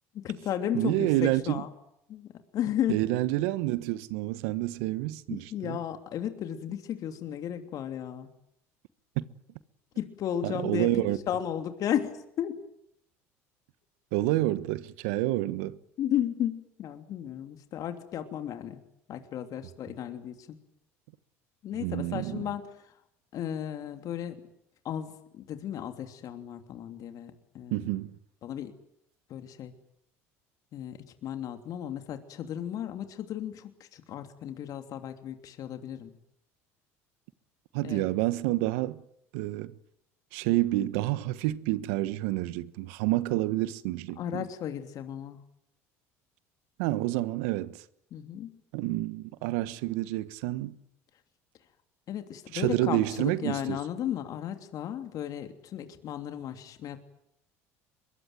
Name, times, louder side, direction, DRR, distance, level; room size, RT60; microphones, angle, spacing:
voice 1, 0.1-1.7 2.1-3.0 5.3-8.3 10.0-11.0 11.3-12.5 16.0-18.8 19.1-20.6 21.6-22.6 23.3-24.5 24.8-27.8 28.4-28.7 29.3-29.7 30.7-36.1 37.8-38.0 44.2-45.4 48.1-48.5 52.1-57.0, left 10 dB, 55° left, 3.0 m, -34 dB
voice 2, 0.7-1.6 2.9-5.8 9.2-9.3 10.4-11.2 14.1-15.8 21.8-22.4 27.7-28.2 37.7-39.0 39.3-39.7 40.3-44.5 46.8-47.8 48.7-50.8 52.5-53.8, right 17 dB, 75° right, 1.3 m, -28 dB
24.0 x 22.5 x 9.3 m
supercardioid pair, 85°, 7 cm